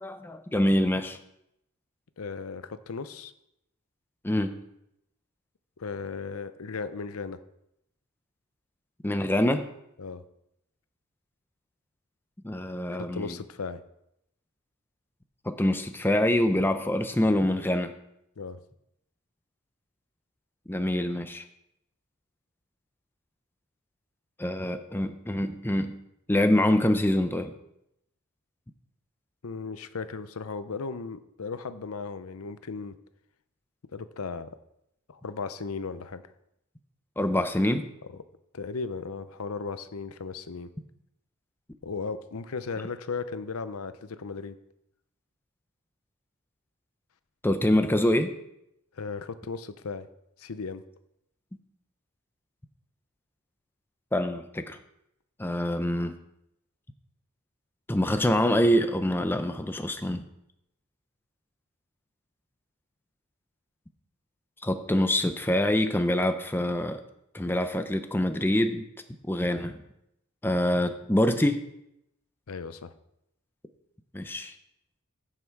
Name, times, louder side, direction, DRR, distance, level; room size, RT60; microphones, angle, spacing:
voice 1, 0.0-1.2 4.2-4.6 9.0-9.7 12.4-13.4 15.4-17.9 20.7-21.4 24.4-25.9 26.3-27.5 37.2-37.9 47.4-48.3 54.1-54.8 55.4-56.2 57.9-60.2 64.6-67.0 67.3-68.8 69.3-69.7 70.4-71.6 74.1-74.5, left 1 dB, 10° left, 8 dB, 0.6 m, -25 dB
voice 2, 2.2-3.3 5.8-7.4 10.0-10.2 13.0-13.8 18.4-18.6 29.4-33.0 33.9-34.5 35.1-36.2 38.5-40.7 41.8-44.6 48.9-50.1 50.4-50.8 72.5-72.9, left 4 dB, 70° left, 12 dB, 0.6 m, -36 dB
15.5 x 5.8 x 4.7 m, 0.80 s
head